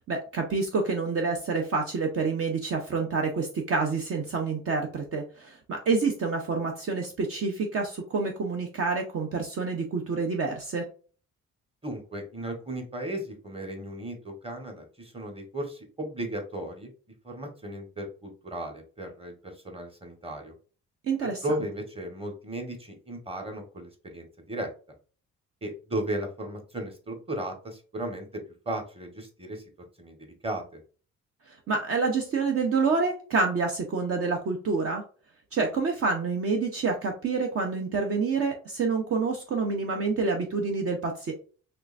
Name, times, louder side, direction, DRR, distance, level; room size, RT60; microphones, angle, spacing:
voice 1, 0.1-10.8 21.0-21.4 31.5-35.0 35.5-41.3, right 4 dB, 50° right, 3 dB, 0.8 m, -28 dB
voice 2, 11.8-16.9 17.2-20.5 21.2-24.7 25.6-28.3 28.6-29.6 30.0-30.8, right 1 dB, 20° right, 4 dB, 1.3 m, -35 dB
3.6 x 3.3 x 2.5 m, 0.39 s
cardioid pair, 90°, 30 cm